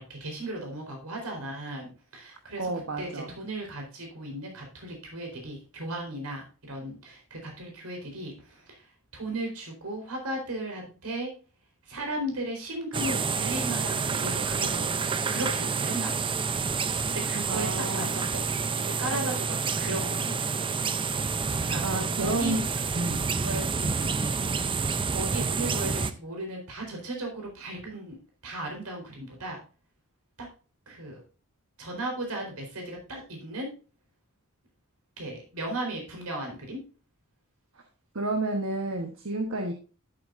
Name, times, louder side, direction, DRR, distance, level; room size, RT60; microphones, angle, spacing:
voice 1, 0.0-2.7 3.0-8.8 9.1-11.3 11.9-16.1 17.1-17.7 17.9-20.9 21.7-22.7 23.4-24.2 25.1-28.2 28.4-29.6 30.4-30.5 30.9-31.2 31.8-33.7 35.2-36.8, right 1 dB, 90° right, 2 dB, 4.1 m, -36 dB
voice 2, 2.6-3.3 17.5-18.1 21.8-22.6 23.0-23.2 38.1-39.7, right 2 dB, 65° right, 4 dB, 1.2 m, -30 dB
sound 1, 12.9-26.1, right 5 dB, 25° right, 0.5 m, -28 dB
12.0 x 7.4 x 2.6 m, 0.34 s
head